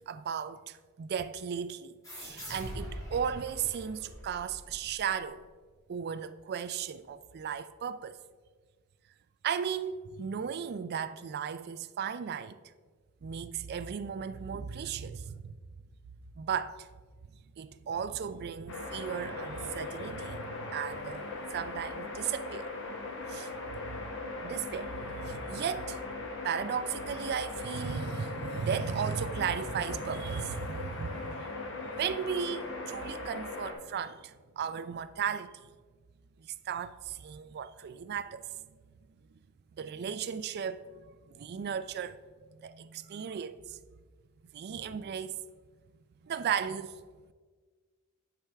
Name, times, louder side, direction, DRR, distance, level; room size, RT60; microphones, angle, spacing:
voice 1, 0.0-5.4 5.9-8.2 9.4-12.6 13.2-15.6 16.4-16.9 17.6-21.3 21.5-22.7 23.3-24.1 24.4-26.0 26.4-31.5 31.9-35.6 36.4-38.5 39.8-42.2 42.6-43.8 44.5-45.4 46.2-47.0, right 7 dB, 45° right, 0.3 m, -36 dB
sound 1, 2.0-5.3, equal, 15° left, 2.0 m, -43 dB
sound 2, 18.7-33.7, left 3 dB, 60° left, 1.2 m, -39 dB
10.0 x 5.9 x 3.4 m
head